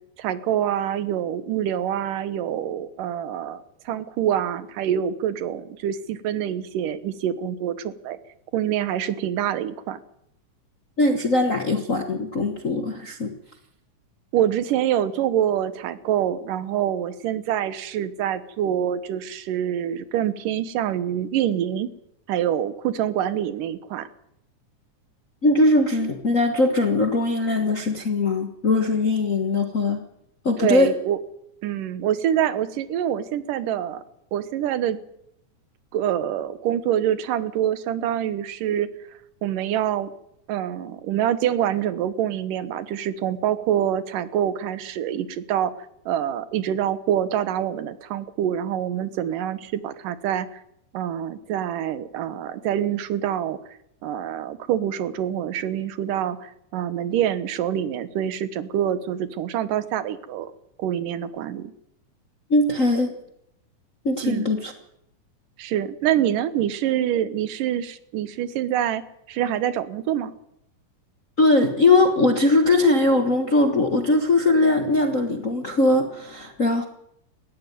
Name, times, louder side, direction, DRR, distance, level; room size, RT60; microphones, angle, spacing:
voice 1, 0.2-8.2 8.5-10.0 14.3-21.9 22.3-24.1 30.6-31.2 31.6-34.0 34.3-35.0 35.9-38.9 39.4-40.1 40.5-45.7 46.1-50.6 50.9-53.6 54.0-60.5 60.8-61.7 64.2-64.5 65.6-69.0 69.3-70.3, right 10 dB, 85° right, 14 dB, 2.7 m, -25 dB
voice 2, 11.0-13.3 25.4-30.0 30.4-30.9 62.5-63.1 64.0-64.7 71.4-76.8, left 2 dB, 50° left, 5 dB, 1.0 m, -20 dB
19.5 x 15.0 x 9.2 m, 0.79 s
omnidirectional pair, 3.7 m